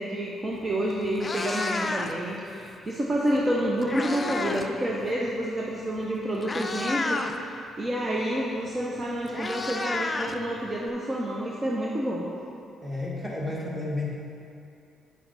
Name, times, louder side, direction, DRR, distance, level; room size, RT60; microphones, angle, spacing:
voice 1, 0.0-12.3, right 1 dB, 30° right, -3 dB, 0.8 m, -29 dB
Meow, 0.6-0.7 1.0-2.3 3.4-4.7 5.0-5.3 6.0-6.1 6.4-7.3 8.7-8.8 9.0-10.9, left 3 dB, 25° left, 0.5 m, -31 dB
voice 2, 12.8-14.1, left 2 dB, 5° right, -5 dB, 1.9 m, -31 dB
8.5 x 5.9 x 4.1 m, 2.6 s
cardioid pair, 90°, 0 cm